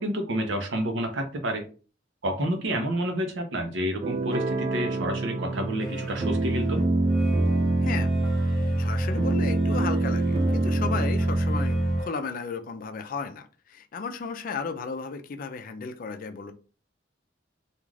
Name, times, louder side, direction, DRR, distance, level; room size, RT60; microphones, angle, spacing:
voice 1, 0.0-1.7 2.2-6.8, equal, 75° right, 5 dB, 0.7 m, -29 dB
sound 1, 4.0-12.0, right 2 dB, 35° right, 0.3 m, -25 dB
sound 2, 5.6-12.1, equal, ahead, 0.9 m, -42 dB
voice 2, 8.4-16.5, left 5 dB, 45° left, 7 dB, 0.4 m, -34 dB
2.4 x 2.4 x 3.2 m, 0.37 s
head